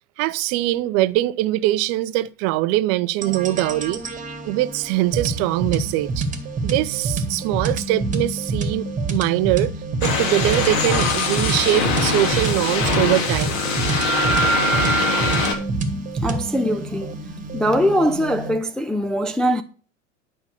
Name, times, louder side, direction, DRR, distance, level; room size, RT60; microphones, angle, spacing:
voice 1, 0.2-4.0 4.5-6.3 6.6-9.7 10.0-13.6, right 15 dB, 40° right, 0.6 m, -22 dB
sound 1, 3.2-18.6, right 3 dB, 20° right, 1.8 m, -27 dB
sound 2, 10.0-15.5, left 2 dB, 45° left, 2.7 m, -22 dB
voice 2, 16.2-17.2 17.5-19.6, equal, ahead, 0.4 m, -21 dB
10.5 x 5.5 x 6.7 m
figure-of-eight pair, 85°, 38 cm